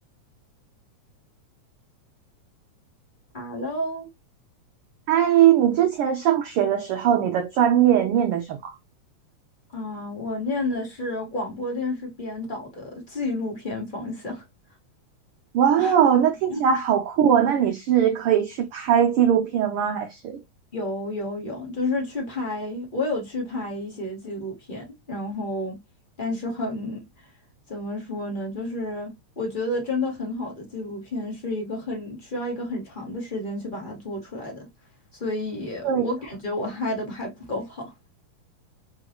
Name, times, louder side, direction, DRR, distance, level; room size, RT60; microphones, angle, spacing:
voice 1, 3.3-4.1 9.7-14.4 15.8-15.9 16.5-16.7 20.7-25.8 26.2-27.0 27.7-34.7 35.1-37.9, left 2 dB, 25° left, 1.0 m, -30 dB
voice 2, 5.1-8.7 15.5-20.4 35.8-36.1, right 9 dB, 90° right, 1.2 m, -20 dB
4.6 x 3.8 x 3.0 m
omnidirectional pair, 3.4 m